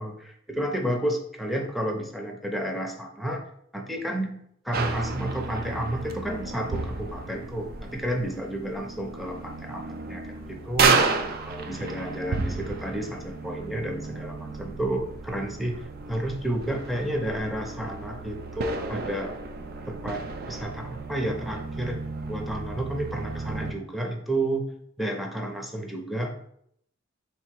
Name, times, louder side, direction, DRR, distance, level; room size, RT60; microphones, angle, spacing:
voice 1, 0.0-3.4 3.7-4.4 4.6-11.0 11.5-15.8 16.1-19.4 19.9-22.0 22.3-24.7 25.0-26.5, right 1 dB, ahead, 1 dB, 0.6 m, -31 dB
sound 1, 4.7-23.7, right 4 dB, 50° right, 0.4 m, -32 dB
3.9 x 2.9 x 4.5 m, 0.71 s
head